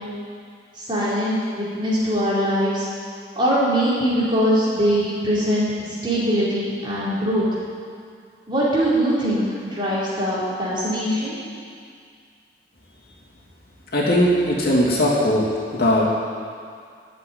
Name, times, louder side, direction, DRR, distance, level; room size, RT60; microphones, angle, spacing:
voice 1, 0.8-2.9 3.4-5.7 6.0-7.4 8.5-11.4, equal, 25° right, -9 dB, 4.7 m, -22 dB
voice 2, 13.9-15.4 15.7-16.0, left 1 dB, 60° left, -5 dB, 3.1 m, -19 dB
13.5 x 7.9 x 9.7 m, 2.2 s
head